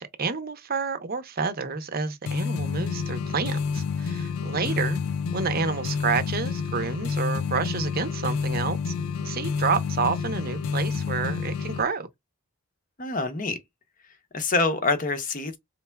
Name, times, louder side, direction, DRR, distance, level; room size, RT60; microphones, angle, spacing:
voice 1, 0.0-5.0 5.3-8.9 9.2-12.1, right 4 dB, 45° right, 0.7 m, -29 dB
sound 1, 2.3-11.8, left 5 dB, 75° left, 0.3 m, -29 dB
voice 2, 13.0-13.6 14.3-15.6, left 3 dB, 35° left, 0.7 m, -26 dB
4.4 x 3.3 x 2.2 m
head